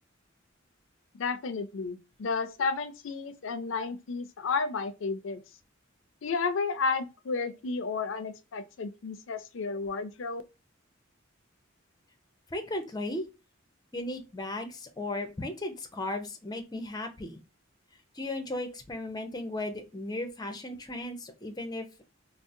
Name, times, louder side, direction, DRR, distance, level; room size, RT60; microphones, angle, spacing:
voice 1, 1.1-5.4 6.2-10.4, left 4 dB, 75° left, 0.5 m, -32 dB
voice 2, 12.5-13.2 13.9-17.4 18.1-21.9, left 1 dB, 20° left, 0.6 m, -36 dB
3.7 x 2.0 x 2.6 m
head